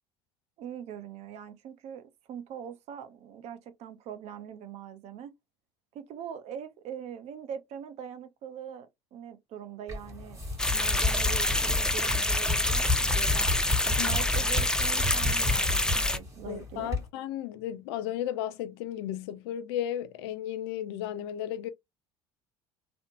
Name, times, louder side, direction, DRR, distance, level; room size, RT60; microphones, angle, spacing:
voice 1, 0.6-5.3 5.9-10.4 10.7-13.5 13.9-16.9, right 9 dB, 50° right, 0.6 m, -42 dB
sound 1, 9.9-17.1, left 2 dB, 20° right, 1.5 m, -32 dB
sound 2, 10.6-16.2, left 1 dB, 5° left, 0.4 m, -27 dB
voice 2, 16.5-21.7, left 11 dB, 70° left, 0.4 m, -34 dB
2.8 x 2.1 x 2.7 m
hypercardioid pair, 65°, 14 cm